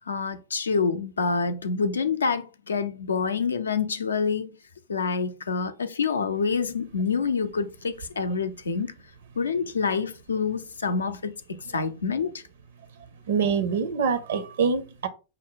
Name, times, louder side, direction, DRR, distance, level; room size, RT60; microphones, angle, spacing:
voice 1, 0.1-4.5 4.9-8.9 9.4-12.3, left 5 dB, 75° left, 0.5 m, -27 dB
voice 2, 13.3-15.1, right 6 dB, 60° right, 0.5 m, -25 dB
5.8 x 2.1 x 3.9 m
figure-of-eight pair, 90°, 0 cm